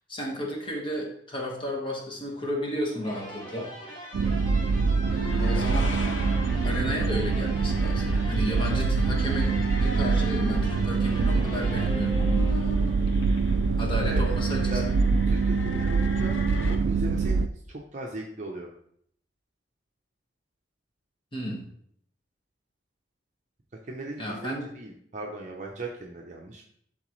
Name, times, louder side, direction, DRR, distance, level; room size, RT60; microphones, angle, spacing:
voice 1, 0.1-3.7 5.4-6.1 6.6-9.5 9.8-12.7 13.8-14.8 21.3-21.7 24.2-24.7, equal, 25° left, -1 dB, 1.5 m, -33 dB
sound 1, 3.0-13.0, equal, 45° left, 2.5 m, -42 dB
sound 2, 4.1-17.5, right 4 dB, 85° right, 0.3 m, -25 dB
sound 3, 5.0-16.8, left 1 dB, 90° left, 0.8 m, -38 dB
voice 2, 15.3-16.4 16.7-18.7 23.8-26.7, right 2 dB, 40° right, 0 dB, 0.7 m, -38 dB
11.5 x 3.9 x 3.2 m, 0.67 s
head